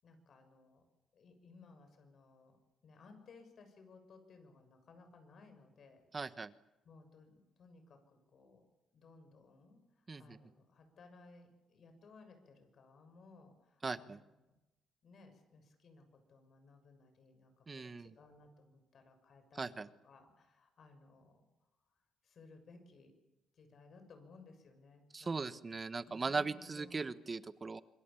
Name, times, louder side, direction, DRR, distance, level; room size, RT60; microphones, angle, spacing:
voice 1, 0.0-0.8 1.1-2.6 2.8-6.0 6.8-8.6 8.9-14.5 15.0-19.8 20.0-21.4 22.2-23.1 23.5-25.7 26.0-27.1, left 3 dB, 55° left, 7 dB, 6.9 m, -60 dB
voice 2, 6.1-6.5 10.1-10.4 13.8-14.2 17.7-18.1 19.6-19.9 25.1-27.8, right 4 dB, 30° right, 13 dB, 1.3 m, -39 dB
26.5 x 23.0 x 7.1 m, 1.0 s
cardioid pair, 90°, 0 cm